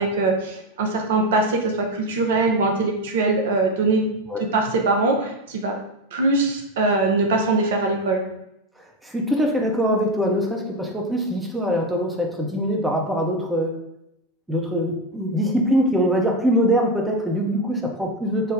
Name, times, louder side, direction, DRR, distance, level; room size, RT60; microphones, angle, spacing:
voice 1, 0.0-4.1 4.5-5.7 6.1-8.2, right 3 dB, 55° right, 2 dB, 0.5 m, -22 dB
voice 2, 8.8-13.7 14.5-18.5, equal, 5° right, 0 dB, 0.6 m, -23 dB
3.3 x 2.0 x 3.4 m, 0.81 s
figure-of-eight pair, 90°, 0 cm